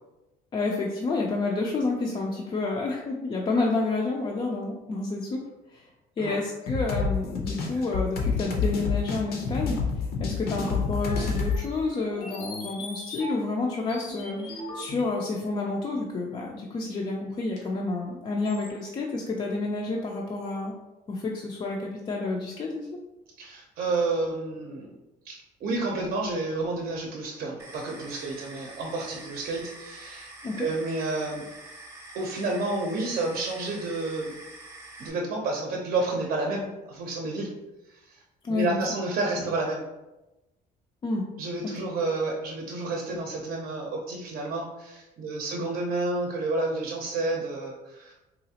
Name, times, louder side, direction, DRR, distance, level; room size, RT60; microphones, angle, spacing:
voice 1, 0.5-5.4 5.7-5.9 6.2-20.7 21.1-22.9 30.4-30.7 38.4-38.8 41.0-41.3 41.6-41.8, left 3 dB, 30° left, -1 dB, 0.4 m, -29 dB
sound 1, 6.7-11.6, left 5 dB, 65° left, 0.7 m, -28 dB
sound 2, 11.0-13.6 13.9-15.4 16.6-16.7 17.6-17.7 18.4-18.7, left 1 dB, 85° left, 1.2 m, -40 dB
voice 2, 23.4-24.9 25.2-30.3 30.6-31.5 32.1-34.3 35.0-37.5 37.9-38.2 38.5-39.8 41.4-48.1, right 2 dB, 55° right, 0 dB, 0.6 m, -30 dB
sound 3, 27.6-35.1, right 2 dB, 15° right, 0.6 m, -46 dB
3.9 x 2.4 x 2.7 m, 1.0 s
cardioid pair, 110°, 17 cm